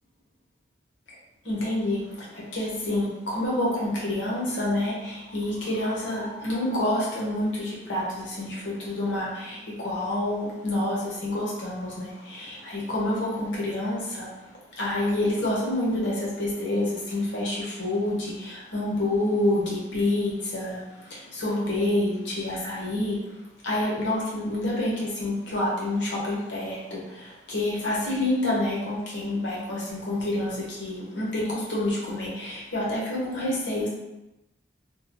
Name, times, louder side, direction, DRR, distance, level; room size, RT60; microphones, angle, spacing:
voice 1, 1.4-14.5 14.8-33.9, left 1 dB, 90° left, -5 dB, 0.9 m, -28 dB
3.0 x 2.1 x 2.9 m, 0.95 s
head